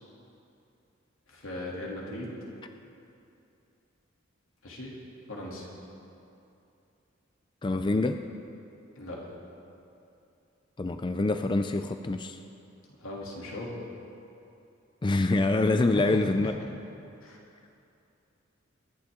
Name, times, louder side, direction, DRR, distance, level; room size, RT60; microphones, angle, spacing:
voice 1, 1.3-2.3 4.6-5.0 5.3-5.7 9.0-9.2 13.0-13.7 15.9-16.5 17.2-17.4, left 1 dB, 85° left, -3 dB, 2.9 m, -38 dB
voice 2, 7.6-8.2 10.8-12.4 15.0-16.5, left 2 dB, 25° left, 7 dB, 0.4 m, -25 dB
23.5 x 11.5 x 3.8 m, 2.7 s
head